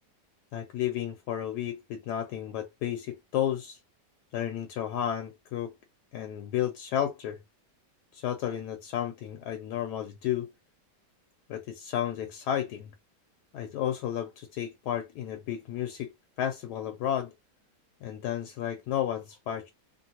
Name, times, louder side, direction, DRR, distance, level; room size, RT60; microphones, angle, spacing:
voice 1, 0.5-3.8 4.3-5.7 6.1-7.4 8.1-10.5 11.5-12.9 13.5-16.1 16.4-17.3 18.0-19.7, left 10 dB, 75° left, 1.1 m, -32 dB
3.0 x 2.4 x 2.8 m
omnidirectional pair, 1.8 m